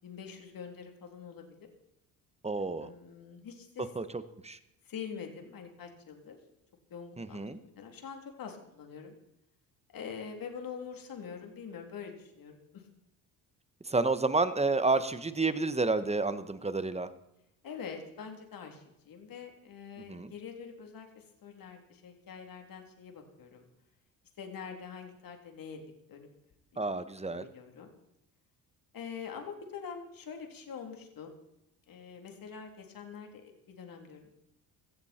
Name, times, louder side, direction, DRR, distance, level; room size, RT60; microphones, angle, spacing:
voice 1, 0.0-1.7 2.8-3.9 4.8-6.4 6.9-9.2 9.9-12.9 17.6-23.6 24.4-25.8 26.1-26.3 26.7-26.9 27.3-27.9 28.9-31.3 31.9-34.3, left 6 dB, 55° left, 3 dB, 3.5 m, -45 dB
voice 2, 2.4-2.9 3.9-4.6 7.2-7.6 13.8-17.1 20.1-20.3 26.8-27.4, right 3 dB, 15° right, 12 dB, 1.3 m, -30 dB
17.0 x 14.0 x 4.5 m, 0.84 s
supercardioid pair, 80°, 41 cm